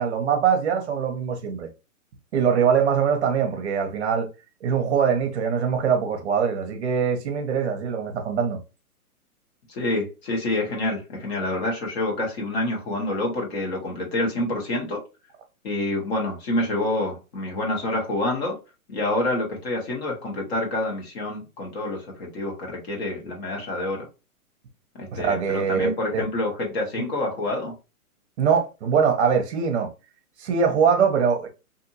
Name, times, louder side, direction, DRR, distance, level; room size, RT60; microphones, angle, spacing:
voice 1, 0.0-1.7 2.3-4.3 4.6-8.6 25.1-26.3 28.4-29.9 30.4-31.5, right 7 dB, 50° right, 0.7 m, -22 dB
voice 2, 9.7-15.0 15.6-18.6 18.9-24.1 25.0-27.7, left 2 dB, 45° left, 1.2 m, -27 dB
2.7 x 2.5 x 2.6 m
hypercardioid pair, 145°, 45 cm